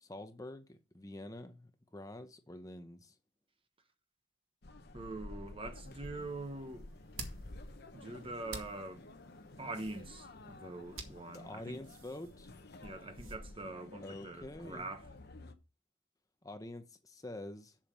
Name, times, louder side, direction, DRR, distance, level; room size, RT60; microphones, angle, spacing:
voice 1, 0.0-3.2 11.3-12.5 14.0-14.9 16.4-17.8, left 1 dB, 15° left, 0.7 m, -47 dB
sound 1, 4.6-15.5, left 2 dB, 50° left, 1.0 m, -51 dB
voice 2, 4.9-6.9 7.9-9.0 9.6-11.8 12.8-15.1, right 2 dB, 25° right, 1.0 m, -44 dB
sound 2, 6.1-13.4, right 4 dB, 75° right, 1.7 m, -52 dB
7.4 x 7.1 x 5.2 m
head